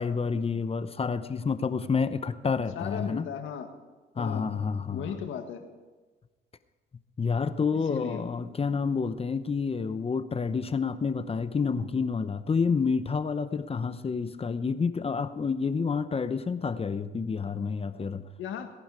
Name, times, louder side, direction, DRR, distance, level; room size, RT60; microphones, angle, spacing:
voice 1, 0.0-3.2 4.2-5.1 7.2-18.3, left 5 dB, 30° left, 12 dB, 0.8 m, -29 dB
voice 2, 2.7-3.7 4.2-4.5 4.9-5.6 7.8-8.2 18.4-18.7, left 8 dB, 80° left, 6 dB, 1.7 m, -35 dB
18.5 x 11.0 x 4.9 m, 1.3 s
cardioid pair, 90°, 20 cm